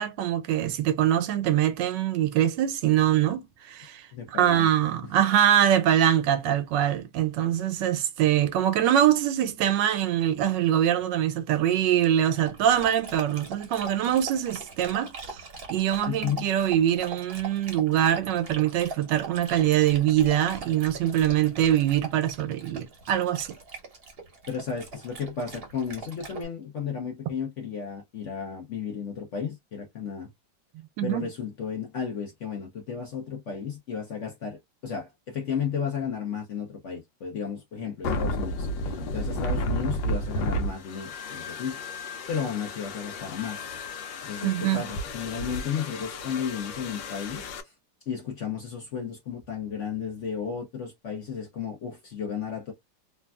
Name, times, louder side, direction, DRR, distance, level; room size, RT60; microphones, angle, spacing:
voice 1, 0.0-15.4 15.7-23.6 31.0-31.3 44.4-44.8, right 11 dB, 80° right, 1.3 m, -24 dB
voice 2, 4.1-4.7 16.1-16.4 24.5-30.3 31.0-43.6 44.2-47.5 48.1-52.7, left 7 dB, 55° left, 0.8 m, -33 dB
Dog, 12.2-26.4, right 4 dB, 45° right, 0.8 m, -42 dB
sound 1, 38.0-47.6, left 1 dB, 90° left, 1.4 m, -32 dB
3.3 x 2.3 x 2.3 m
omnidirectional pair, 2.0 m